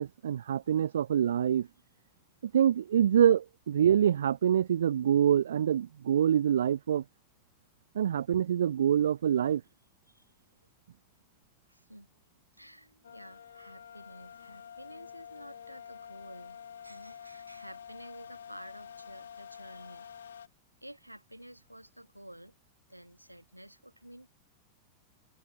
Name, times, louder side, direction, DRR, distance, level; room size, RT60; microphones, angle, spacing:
voice 1, 0.0-1.7 2.5-7.0 8.0-9.6, right 9 dB, 65° right, 0.3 m, -25 dB
voice 2, 11.7-12.1 12.5-20.1 20.8-22.5 22.9-24.3, right 1 dB, 90° right, 4.6 m, -51 dB
sound 1, 13.0-20.5, left 8 dB, 65° left, 1.5 m, -48 dB
figure-of-eight pair, 90°, 0 cm